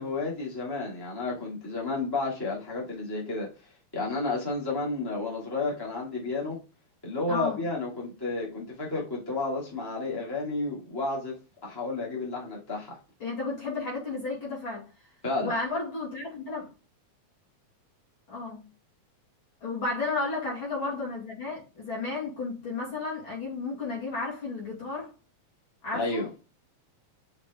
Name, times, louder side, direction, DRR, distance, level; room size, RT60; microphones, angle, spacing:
voice 1, 0.0-3.5 3.9-6.6 7.0-11.3 11.6-13.0 15.2-15.5 25.9-26.3, left 3 dB, 10° left, 2.3 m, -31 dB
voice 2, 7.3-7.6 13.2-14.9 15.4-16.7 18.3-18.7 19.6-25.1 25.8-26.2, left 3 dB, 45° left, 3.0 m, -33 dB
5.9 x 5.1 x 3.7 m
omnidirectional pair, 3.4 m